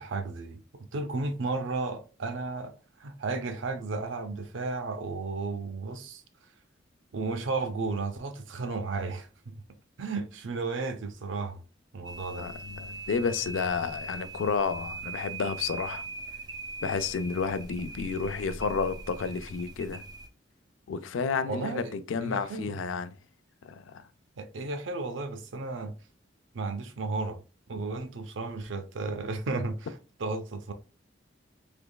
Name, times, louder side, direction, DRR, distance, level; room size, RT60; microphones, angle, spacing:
voice 1, 0.0-2.7 3.0-6.2 7.1-9.6 10.0-11.6 11.9-12.5 21.5-22.8 24.4-25.9 26.5-27.4 27.7-29.9 30.2-30.7, right 3 dB, 70° right, 0.5 m, -33 dB
sound 1, 12.0-20.3, right 3 dB, 20° right, 0.3 m, -41 dB
voice 2, 12.4-16.0 16.8-20.0 20.9-23.1 23.6-24.1, left 5 dB, 80° left, 0.4 m, -31 dB
3.4 x 3.0 x 2.2 m
head